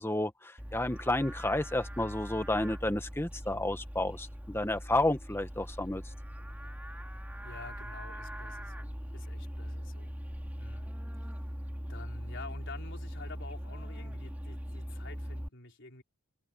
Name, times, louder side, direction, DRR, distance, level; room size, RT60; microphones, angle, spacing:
voice 1, 0.0-6.0, left 1 dB, 10° left, 1.2 m, -31 dB
Livestock farm animals working animals, 0.6-15.5, equal, 10° right, 2.2 m, -41 dB
voice 2, 7.1-10.2 10.6-10.9 11.9-16.0, left 3 dB, 55° left, 4.4 m, -49 dB
open air
head